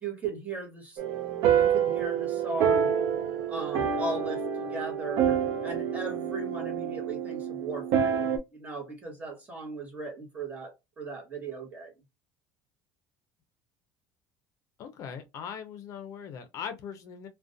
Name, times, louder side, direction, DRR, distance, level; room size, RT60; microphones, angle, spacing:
voice 1, 0.0-1.0 1.5-2.9 3.5-8.2 8.5-11.9, right 3 dB, 20° right, 0.9 m, -37 dB
sound 1, 1.0-8.4, right 8 dB, 70° right, 0.4 m, -27 dB
voice 2, 14.8-17.3, left 7 dB, 50° left, 0.5 m, -40 dB
2.4 x 2.1 x 2.4 m
cardioid pair, 145°, 7 cm